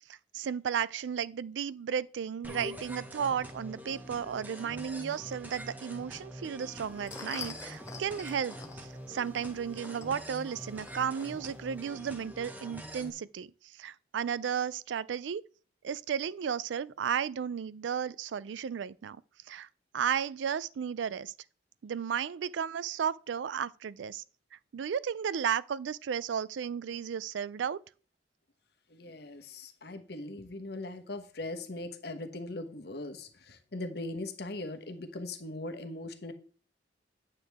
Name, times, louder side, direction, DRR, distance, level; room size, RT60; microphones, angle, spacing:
voice 1, 0.3-15.4 15.8-19.2 19.5-19.7 19.9-21.3 21.8-24.2 24.7-27.8, right 7 dB, 80° right, 0.4 m, -34 dB
sound 1, 2.4-13.1, equal, 10° right, 0.9 m, -45 dB
sound 2, 6.7-11.9, left 4 dB, 15° left, 0.7 m, -47 dB
voice 2, 28.9-36.3, left 2 dB, 60° left, 1.1 m, -40 dB
9.3 x 6.7 x 3.5 m
head